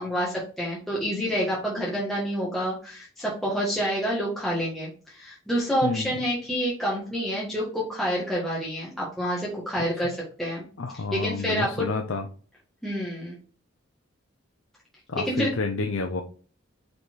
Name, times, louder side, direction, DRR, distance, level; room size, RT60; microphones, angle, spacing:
voice 1, 0.0-10.7 11.1-11.9 12.8-13.3 15.2-15.5, equal, ahead, -6 dB, 1.5 m, -28 dB
voice 2, 5.8-6.1 10.8-12.3 15.1-16.2, left 3 dB, 75° left, 4 dB, 0.6 m, -29 dB
5.2 x 4.0 x 4.5 m, 0.41 s
head